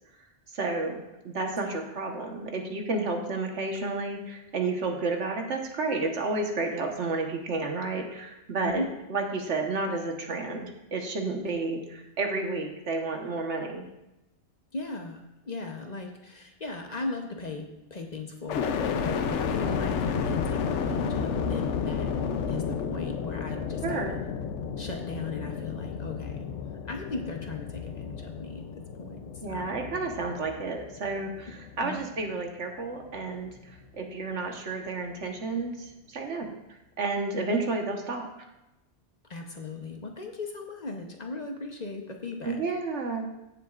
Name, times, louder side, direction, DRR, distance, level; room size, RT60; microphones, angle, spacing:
voice 1, 0.5-1.0 1.2-8.8 9.1-13.8 23.8-24.2 29.4-38.3 42.4-43.4, right 3 dB, 85° right, 2 dB, 1.6 m, -31 dB
voice 2, 14.7-22.1 22.5-24.2 24.8-26.5 26.9-28.7 28.9-29.7 31.8-32.0 39.3-42.6, left 3 dB, 40° left, 3 dB, 1.0 m, -38 dB
sound 1, 18.5-32.5 33.0-33.7, left 6 dB, 90° left, 1.0 m, -32 dB
15.0 x 7.4 x 2.5 m, 0.92 s
omnidirectional pair, 1.2 m